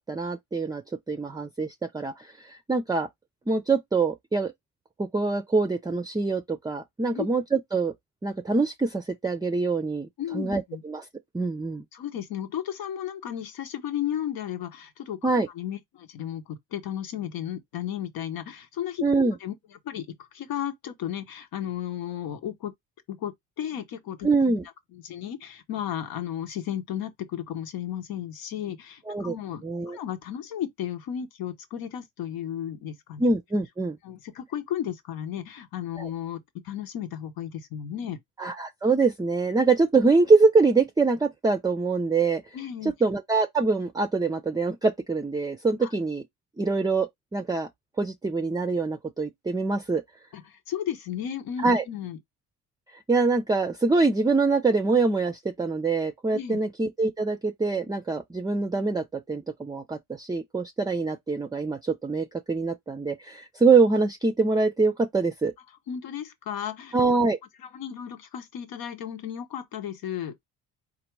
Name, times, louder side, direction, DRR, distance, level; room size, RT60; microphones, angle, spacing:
voice 1, 0.1-0.8 1.1-3.1 3.5-4.5 5.0-7.9 8.2-10.1 10.3-11.0 11.3-11.8 15.2-15.5 19.0-19.4 24.2-24.7 29.1-29.4 29.6-30.0 33.2-34.0 36.0-36.1 38.4-42.6 42.8-46.2 46.6-47.7 48.0-50.0 51.6-51.8 52.9-65.5 66.9-67.4, right 3 dB, 10° right, 0.4 m, -24 dB
voice 2, 10.2-10.8 11.9-15.3 15.5-19.0 19.4-19.5 19.8-22.7 23.1-24.3 24.9-33.2 34.0-38.2 42.5-42.9 45.8-45.9 50.3-52.2 56.3-56.6 65.9-66.9 67.6-70.3, left 10 dB, 80° left, 1.0 m, -34 dB
4.1 x 2.6 x 4.6 m
cardioid pair, 110°, 35 cm